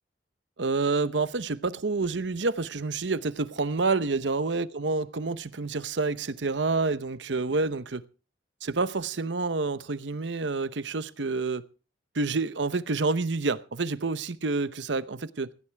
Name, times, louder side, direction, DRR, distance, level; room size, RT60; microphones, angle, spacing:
voice 1, 0.6-8.0 8.6-11.7 12.1-15.5, right 3 dB, 75° right, 0.8 m, -28 dB
17.5 x 16.5 x 3.4 m
head